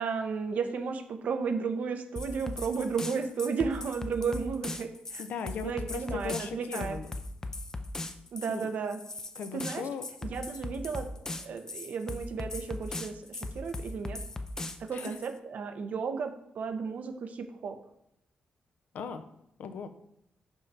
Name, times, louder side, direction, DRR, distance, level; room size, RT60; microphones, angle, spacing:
voice 1, 0.0-5.2 5.6-7.0 8.3-9.0 9.5-9.8 10.3-11.1 11.4-14.2 14.9-17.8, right 5 dB, 65° right, 7 dB, 0.8 m, -33 dB
sound 1, 2.2-15.3, left 2 dB, 20° left, 0.5 m, -39 dB
voice 2, 5.2-7.2 8.5-8.7 9.4-10.1 14.9-15.2 18.9-19.2 19.6-19.9, left 6 dB, 75° left, 10 dB, 0.6 m, -38 dB
5.5 x 5.4 x 4.7 m, 0.78 s
cardioid pair, 125°, 3 cm